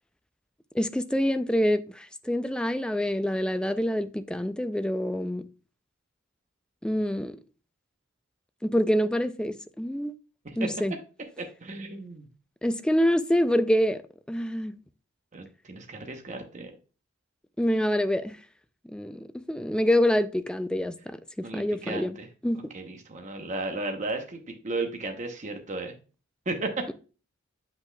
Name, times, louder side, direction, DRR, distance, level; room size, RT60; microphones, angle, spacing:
voice 1, 0.7-5.4 6.8-7.4 8.6-10.1 10.6-10.9 12.6-14.0 14.3-14.8 17.6-18.4 18.9-22.2 22.4-22.6, equal, 5° left, 0.3 m, -26 dB
voice 2, 11.4-12.3 15.3-16.7 21.4-22.3 22.7-25.9 26.5-26.8, right 2 dB, 35° right, 0.8 m, -34 dB
7.9 x 5.7 x 2.2 m
head